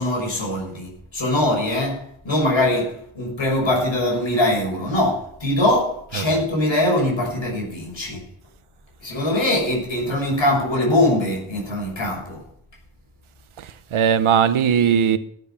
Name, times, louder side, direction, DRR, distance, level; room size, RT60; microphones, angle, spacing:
voice 1, 0.0-8.2 9.0-12.4, left 1 dB, 70° left, 6.4 m, -22 dB
voice 2, 13.6-15.2, right 8 dB, 85° right, 1.0 m, -19 dB
13.5 x 8.1 x 7.0 m
cardioid pair, 55°, 48 cm